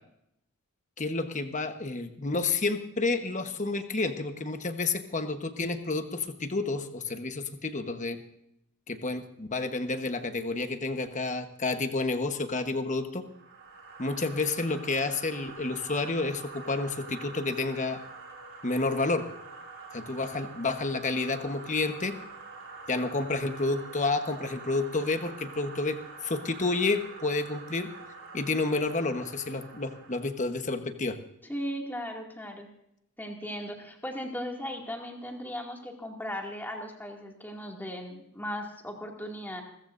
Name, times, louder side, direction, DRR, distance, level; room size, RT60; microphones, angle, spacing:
voice 1, 1.0-8.2 8.9-13.2 14.0-18.0 18.6-19.3 19.9-22.2 22.9-27.9 28.3-31.2, left 3 dB, 35° left, 7 dB, 1.2 m, -30 dB
sound 1, 13.3-30.3, right 3 dB, 55° right, 4.2 m, -46 dB
voice 2, 31.5-32.7 33.2-39.6, equal, 10° left, 0 dB, 2.4 m, -37 dB
28.5 x 14.0 x 2.6 m, 0.78 s
head